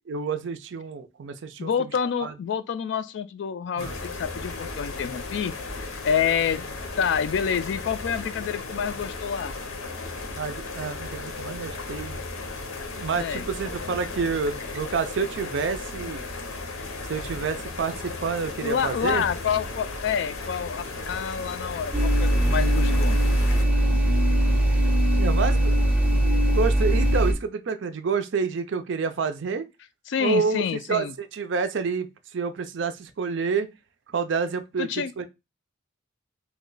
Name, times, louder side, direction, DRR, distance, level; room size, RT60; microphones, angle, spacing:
voice 1, 0.1-1.7 2.2-2.3 3.8-4.0 10.4-12.2 13.0-16.2 17.1-19.2 25.2-25.8 26.1-29.7 30.2-33.7 34.1-35.2, right 5 dB, 60° right, 0.4 m, -28 dB
voice 2, 1.6-5.5 6.0-6.7 7.0-9.5 13.2-13.5 18.6-23.2 30.1-31.1 34.8-35.1, left 7 dB, 55° left, 0.3 m, -28 dB
sound 1, 3.8-23.6, left 3 dB, 85° left, 0.7 m, -35 dB
sound 2, 21.9-27.3, right 1 dB, 5° right, 0.6 m, -21 dB
3.0 x 2.2 x 3.8 m
head